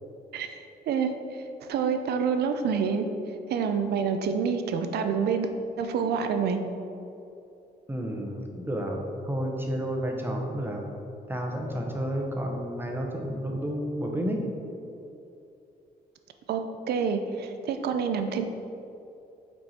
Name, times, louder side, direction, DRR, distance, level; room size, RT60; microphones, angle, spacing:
voice 1, 0.3-3.0 3.5-5.5 5.8-6.6 16.5-16.6 16.9-18.4, right 6 dB, 80° right, 7 dB, 0.5 m, -27 dB
voice 2, 7.9-9.0 9.2-10.8 11.3-14.4, equal, 15° right, 1 dB, 0.8 m, -31 dB
5.2 x 4.5 x 4.2 m, 2.7 s
cardioid pair, 105°, 17 cm